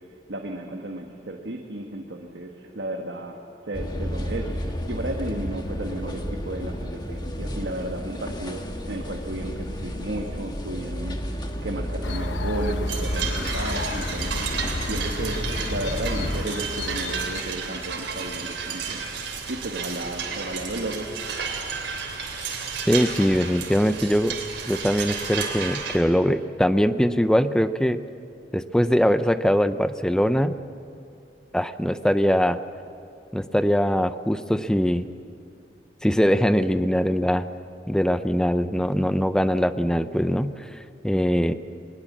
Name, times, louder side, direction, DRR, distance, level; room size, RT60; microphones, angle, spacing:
voice 1, 0.3-21.1, right 1 dB, 70° right, 1 dB, 1.5 m, -34 dB
sound 1, 3.7-16.4, equal, 25° left, 1.5 m, -31 dB
sound 2, 12.0-17.4, left 4 dB, 90° left, 0.8 m, -34 dB
sound 3, 12.8-26.0, right 6 dB, 90° right, 3.1 m, -32 dB
voice 2, 22.9-24.4 24.7-28.0 28.5-30.6 31.5-32.6 33.3-35.1 36.0-37.5 37.9-41.5, equal, 5° left, 11 dB, 0.5 m, -22 dB
20.5 x 20.0 x 7.3 m, 2.5 s
head